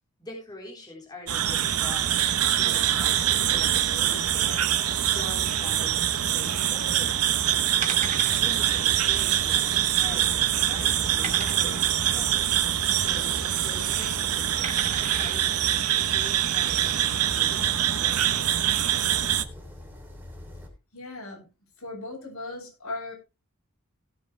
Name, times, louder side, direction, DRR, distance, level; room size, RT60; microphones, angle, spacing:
voice 1, 0.2-7.1 7.4-12.5 13.0-15.8 16.1-18.2, left 2 dB, 20° left, -2 dB, 4.0 m, -44 dB
sound 1, 1.3-19.4, right 11 dB, 80° right, 0.9 m, -24 dB
sound 2, 3.2-20.7, left 1 dB, 10° right, 3.3 m, -45 dB
sound 3, 7.8-8.5 8.9-9.1 9.3-9.4 10.0-10.5 11.2-11.9 13.2-13.6 14.6-15.4 16.0-16.1, right 5 dB, 35° right, 2.4 m, -36 dB
voice 2, 20.9-21.5 21.8-23.1, left 2 dB, 70° left, -1 dB, 7.5 m, -37 dB
17.0 x 7.7 x 3.3 m, 0.28 s
head